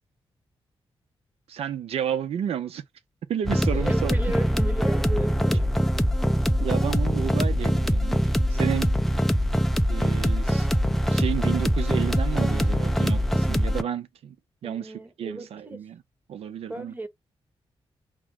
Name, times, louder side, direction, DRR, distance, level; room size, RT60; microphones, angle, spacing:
voice 1, 1.5-2.8 3.3-4.2 6.6-8.2 8.5-8.9 9.9-14.4 14.6-16.0 16.3-16.9, right 9 dB, 85° right, 0.5 m, -31 dB
sound 1, 3.5-13.8, equal, ahead, 0.4 m, -23 dB
voice 2, 3.7-5.7 14.6-15.9 16.7-17.1, right 2 dB, 20° right, 1.0 m, -34 dB
5.9 x 2.1 x 3.5 m
wide cardioid pair, 130°, 10 cm